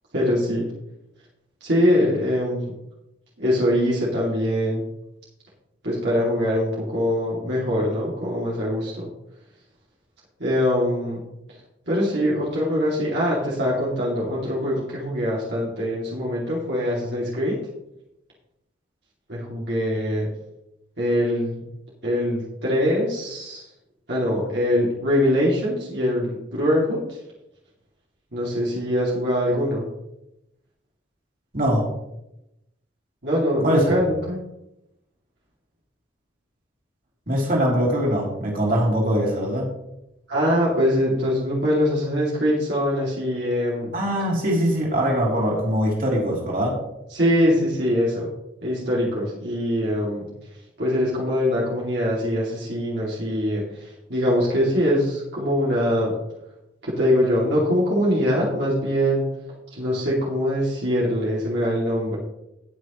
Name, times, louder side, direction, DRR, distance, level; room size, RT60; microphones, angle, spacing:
voice 1, 0.1-0.7 1.6-2.8 3.4-4.8 5.8-9.1 10.4-11.2 11.9-17.6 19.3-20.3 21.0-21.6 22.0-23.7 24.1-27.2 28.3-29.9 33.2-34.4 40.3-43.9 47.1-48.3 48.6-50.3 50.8-56.2 56.8-59.3 59.7-62.2, equal, 65° right, -6 dB, 2.6 m, -23 dB
voice 2, 31.5-31.9 33.6-33.8 37.3-39.7 43.9-46.8, equal, 45° right, -2 dB, 3.2 m, -22 dB
18.5 x 6.4 x 3.1 m, 0.88 s
head